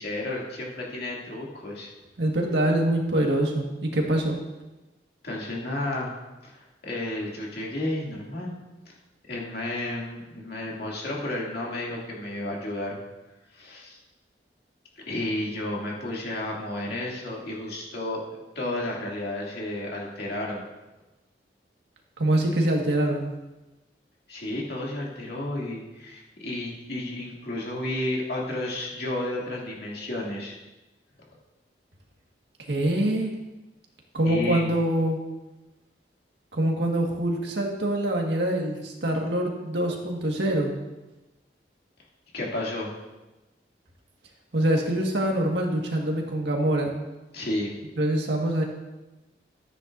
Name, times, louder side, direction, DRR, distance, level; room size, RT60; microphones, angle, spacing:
voice 1, 0.0-1.9 5.2-6.1 6.4-8.5 9.3-13.0 13.5-14.0 15.1-18.2 18.5-20.7 24.3-30.6 34.2-34.7 42.3-42.9 47.3-47.7, left 1 dB, 60° left, -4 dB, 2.6 m, -32 dB
voice 2, 2.2-4.4 22.2-23.3 32.7-33.3 34.1-35.2 36.5-40.7 44.5-46.9 48.0-48.6, right 1 dB, 75° right, 0 dB, 1.7 m, -24 dB
13.5 x 9.8 x 2.6 m, 1.1 s
head